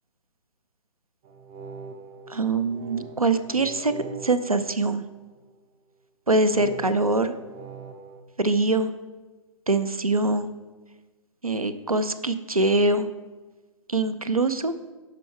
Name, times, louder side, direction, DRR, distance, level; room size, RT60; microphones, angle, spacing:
sound 1, 1.2-5.6 6.4-8.2, right 4 dB, 20° right, 0.5 m, -42 dB
voice 1, 2.3-3.9 4.2-5.0 6.3-7.3 8.4-8.9 9.7-10.5 11.4-13.1 13.9-14.8, right 2 dB, 90° right, 11 dB, 0.6 m, -23 dB
12.0 x 4.8 x 4.5 m, 1.3 s
figure-of-eight pair, 130°, 18 cm